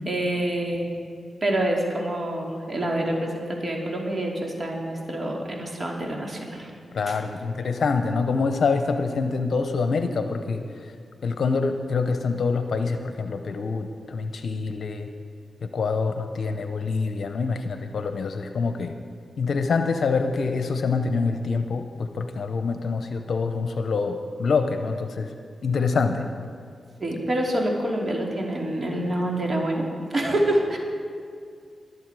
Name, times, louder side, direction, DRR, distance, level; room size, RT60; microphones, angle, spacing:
voice 1, 0.0-0.9 1.4-6.7 7.1-7.2 27.0-29.9 30.1-30.8, right 1 dB, 45° right, 0 dB, 2.8 m, -26 dB
voice 2, 6.9-10.6 11.2-15.1 15.6-18.9 19.4-25.3 25.6-26.2, left 4 dB, 70° left, 7 dB, 0.7 m, -25 dB
22.5 x 8.0 x 4.8 m, 2.3 s
supercardioid pair, 40°, 0 cm